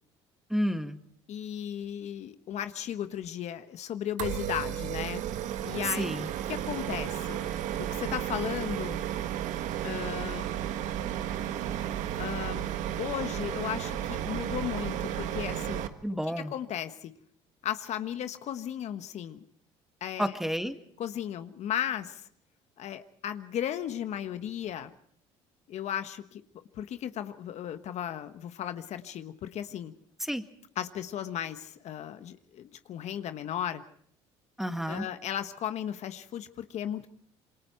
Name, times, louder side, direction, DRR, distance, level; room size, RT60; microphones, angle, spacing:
voice 1, 0.5-1.0 6.0-6.3 16.0-16.5 20.2-20.7 30.2-30.4 34.6-35.1, equal, ahead, 8 dB, 1.8 m, -30 dB
voice 2, 1.3-5.2 5.6-6.0 6.5-7.4 7.8-9.0 9.8-10.4 12.1-12.7 13.0-15.9 16.4-17.1 17.6-19.4 20.0-20.3 21.0-22.3 22.8-24.9 25.7-26.4 26.7-29.9 30.8-33.8 34.9-37.1, left 10 dB, 60° left, 9 dB, 1.2 m, -35 dB
sound 1, 4.2-15.9, right 11 dB, 70° right, 1.5 m, -33 dB
27.0 x 23.0 x 4.5 m, 0.62 s
supercardioid pair, 75°, 13 cm